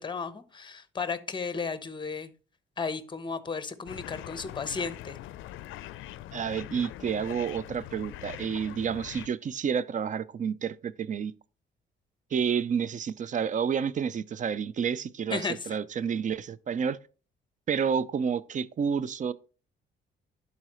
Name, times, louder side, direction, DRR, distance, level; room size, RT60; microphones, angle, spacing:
voice 1, 0.0-2.3 2.8-5.2 15.3-15.7, left 5 dB, 25° left, 0.8 m, -34 dB
sound 1, 3.9-9.3, left 14 dB, 80° left, 0.4 m, -42 dB
voice 2, 6.3-11.3 12.3-17.0 17.7-19.3, right 7 dB, 40° right, 0.4 m, -30 dB
11.5 x 4.1 x 3.0 m
cardioid pair, 90°, 20 cm